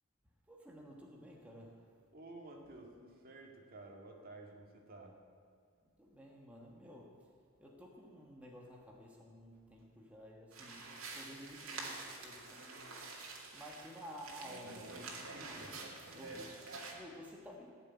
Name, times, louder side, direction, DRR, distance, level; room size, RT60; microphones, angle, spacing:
voice 1, 0.5-2.0 5.8-13.0 13.5-17.7, equal, 5° right, -2 dB, 1.3 m, -53 dB
voice 2, 2.1-5.1 13.4-13.6 14.7-14.8 15.2-15.7, right 2 dB, 45° right, 1 dB, 2.2 m, -53 dB
sound 1, 10.5-16.9, right 3 dB, 70° right, 2.5 m, -47 dB
17.0 x 7.0 x 9.6 m, 2.2 s
head